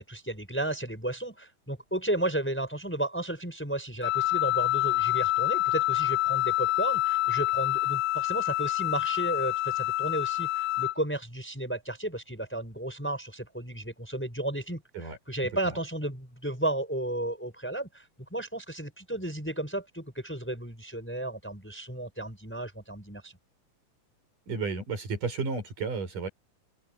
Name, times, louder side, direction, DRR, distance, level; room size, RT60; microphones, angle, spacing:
voice 1, 0.0-23.3, right 1 dB, 5° left, 5.3 m, -33 dB
Wind instrument woodwind instrument, 4.0-11.0, left 16 dB, 80° left, 2.5 m, -27 dB
voice 2, 24.5-26.3, right 4 dB, 70° right, 7.4 m, -32 dB
open air
omnidirectional pair, 3.9 m